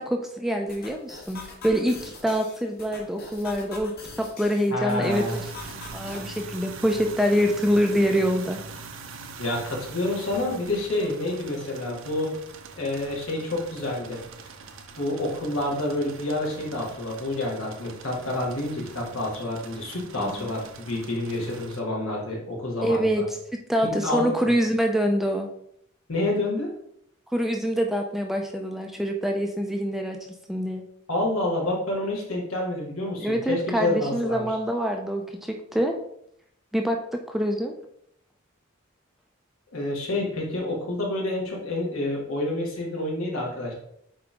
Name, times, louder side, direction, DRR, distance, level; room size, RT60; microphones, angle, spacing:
voice 1, 0.0-5.5 5.9-8.6 20.2-20.5 22.8-23.4 23.7-25.5 27.3-30.9 33.2-36.0 36.7-37.7, equal, ahead, 2 dB, 0.5 m, -25 dB
sound 1, 0.7-6.4, left 3 dB, 50° left, 1.7 m, -43 dB
voice 2, 4.7-5.4 9.4-12.3 12.8-14.2 15.0-23.2 23.8-24.3 26.1-26.7 31.1-34.5 39.7-43.7, left 2 dB, 85° left, -3 dB, 2.3 m, -28 dB
sound 2, 5.1-21.8, right 5 dB, 65° right, 0.7 m, -43 dB
8.7 x 3.5 x 3.6 m, 0.72 s
head